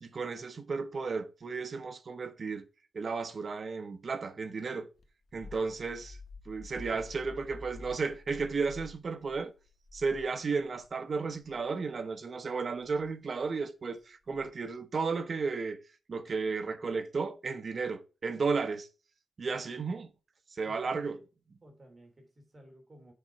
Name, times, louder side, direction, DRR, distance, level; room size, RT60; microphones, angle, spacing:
voice 1, 0.0-2.6 2.9-4.9 5.3-6.2 6.5-9.5 9.9-15.8 16.1-18.9 19.4-20.1 20.5-21.2, right 4 dB, 45° right, 0.9 m, -34 dB
sound 1, 5.0-10.9 11.3-11.6 12.8-13.1 14.3-14.7, left 2 dB, 60° left, 1.3 m, -50 dB
voice 2, 20.6-21.2 21.6-23.1, right 1 dB, 30° right, 2.9 m, -56 dB
6.9 x 5.2 x 4.6 m
wide cardioid pair, 140°, 0 cm